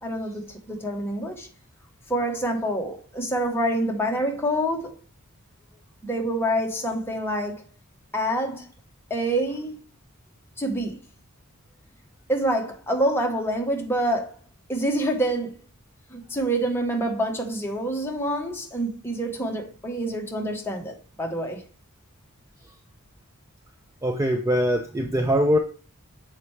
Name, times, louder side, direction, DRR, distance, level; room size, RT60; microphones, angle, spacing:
voice 1, 0.0-1.5 2.1-4.9 6.0-7.6 8.1-8.6 9.1-9.7 10.6-11.0 12.3-14.3 14.7-15.6 16.1-21.6, right 1 dB, 10° left, 1.0 m, -26 dB
voice 2, 24.0-25.6, equal, 15° right, 0.4 m, -22 dB
7.0 x 4.4 x 3.2 m
head